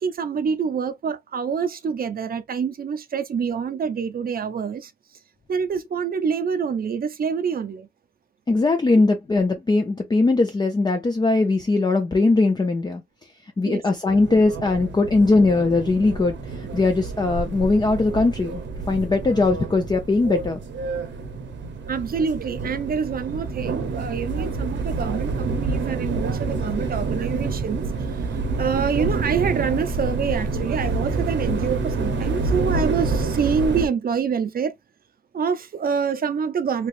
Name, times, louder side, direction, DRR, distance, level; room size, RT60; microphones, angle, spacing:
voice 1, 0.0-4.9 5.5-7.9 13.6-13.8 21.8-34.7 35.3-36.9, right 6 dB, 50° right, 0.5 m, -26 dB
voice 2, 8.5-13.0 13.6-16.3 16.6-18.6 18.9-20.6, left 3 dB, 20° left, 0.5 m, -20 dB
sound 1, 14.1-33.9, right 3 dB, 75° right, 0.8 m, -28 dB
3.2 x 2.9 x 2.5 m
wide cardioid pair, 130°, 19 cm